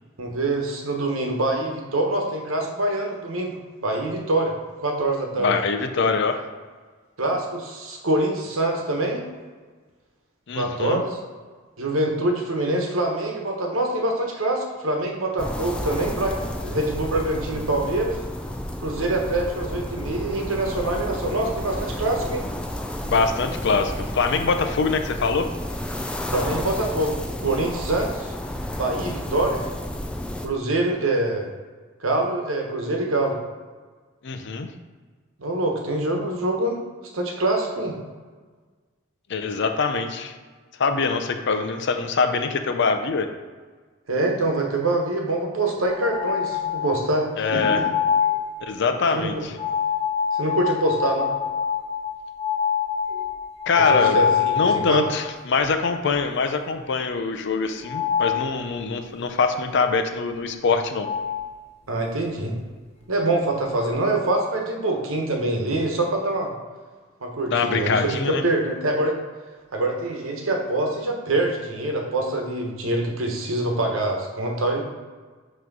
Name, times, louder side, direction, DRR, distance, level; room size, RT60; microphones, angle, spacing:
voice 1, 0.2-4.6 4.8-5.5 7.2-9.2 10.5-11.2 11.8-18.2 18.8-22.4 26.3-27.1 27.4-28.3 28.8-29.6 30.4-31.5 32.0-33.4 35.4-36.8 37.1-38.0 44.1-47.8 49.2-49.4 50.4-51.3 53.8-55.1 61.9-62.5 63.1-66.5 67.2-69.2 69.7-74.8, right 2 dB, 80° right, 1 dB, 1.1 m, -25 dB
voice 2, 5.4-6.5 10.5-11.0 23.1-25.5 34.2-34.7 39.3-40.3 40.8-43.3 47.4-47.8 48.7-49.6 53.7-54.2 54.5-61.1 67.5-68.4, left 4 dB, 60° left, 7 dB, 0.5 m, -23 dB
sound 1, 15.4-30.5, left 1 dB, 5° left, 0.4 m, -31 dB
sound 2, 45.9-47.0 47.5-48.4 49.6-55.2 55.6-55.7 56.1-56.2 57.8-58.4 60.6-60.7 61.0-61.4, left 8 dB, 35° left, 1.1 m, -25 dB
5.9 x 3.1 x 5.4 m, 1.4 s
head